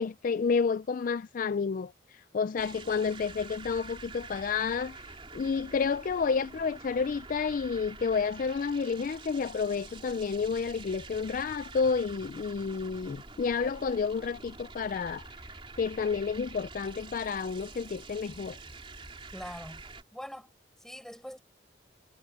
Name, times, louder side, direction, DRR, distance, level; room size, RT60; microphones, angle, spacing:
voice 1, 0.0-15.2 15.8-18.6, left 5 dB, 45° left, 0.3 m, -30 dB
sound 1, 2.6-20.0, right 3 dB, 30° right, 3.5 m, -47 dB
voice 2, 19.3-19.8 20.1-20.5 20.8-21.4, equal, ahead, 7.2 m, -42 dB
head